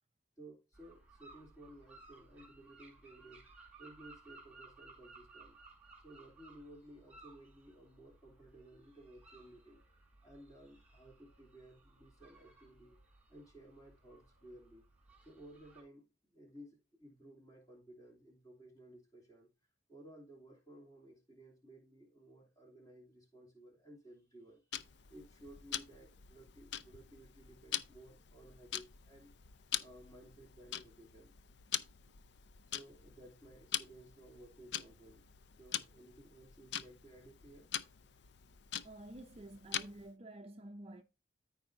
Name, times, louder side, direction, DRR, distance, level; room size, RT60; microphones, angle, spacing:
voice 1, 0.4-3.4 3.8-5.6 6.0-9.8 10.2-13.0 13.3-14.8 15.2-19.5 19.9-29.3 29.8-31.3 32.7-35.2 35.6-37.7, right 1 dB, 20° left, 2.8 m, -57 dB
sound 1, 0.7-15.8, right 3 dB, 10° right, 4.1 m, -60 dB
Tick-tock, 24.7-40.1, left 10 dB, 65° left, 0.5 m, -44 dB
voice 2, 38.8-41.0, right 1 dB, 30° right, 0.5 m, -50 dB
14.0 x 4.7 x 2.6 m
head